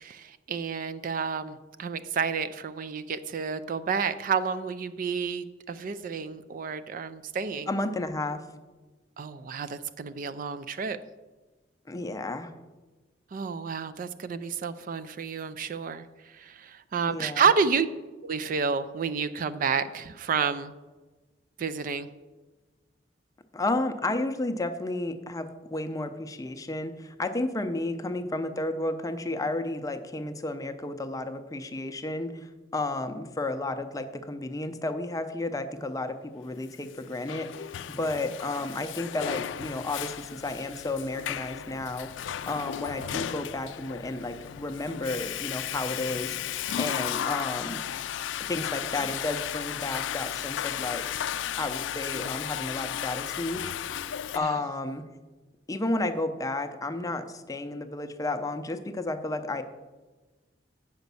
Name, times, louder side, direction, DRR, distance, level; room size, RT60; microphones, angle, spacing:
voice 1, 0.0-7.7 9.2-11.0 13.3-17.9 18.2-20.7 21.6-22.1 54.4-54.6, right 6 dB, 50° right, 12 dB, 0.4 m, -30 dB
voice 2, 7.7-8.4 11.9-12.5 17.1-17.4 23.5-47.8 48.5-51.1 51.6-53.6 54.3-55.0 55.7-59.6, left 2 dB, 20° left, 8 dB, 0.5 m, -32 dB
Water / Toilet flush, 36.9-54.4, left 10 dB, 85° left, 0.3 m, -34 dB
8.1 x 5.1 x 6.8 m, 1.2 s
head